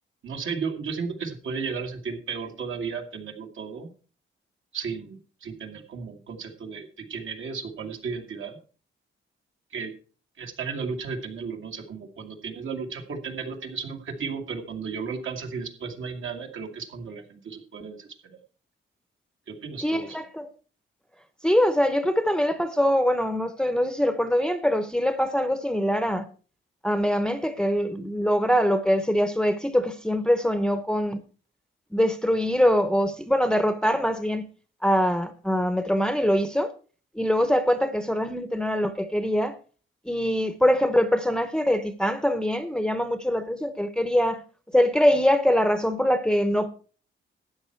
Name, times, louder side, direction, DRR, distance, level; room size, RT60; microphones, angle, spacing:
voice 1, 0.2-3.9 4.7-8.6 9.7-9.9 10.4-18.4 19.5-20.2, right 5 dB, 75° right, 2.1 m, -34 dB
voice 2, 19.8-20.5 21.4-26.2 26.8-31.2 31.9-34.5 34.8-36.7 37.2-39.5 40.1-44.4 44.7-46.7, equal, 5° left, 0.7 m, -23 dB
12.5 x 8.9 x 4.5 m
wide cardioid pair, 155°, 21 cm